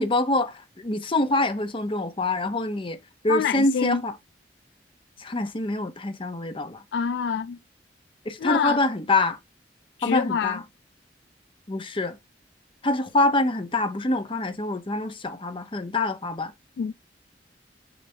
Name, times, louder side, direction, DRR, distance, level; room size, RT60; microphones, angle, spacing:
voice 1, 0.0-3.0 3.2-4.1 5.2-6.8 8.3-9.4 10.0-10.6 11.7-12.2 12.8-16.5, left 2 dB, 30° left, 0.9 m, -25 dB
voice 2, 3.3-4.0 6.9-7.6 8.4-8.8 10.0-10.6 16.8-16.9, left 7 dB, 70° left, 0.3 m, -26 dB
7.1 x 4.1 x 3.3 m
head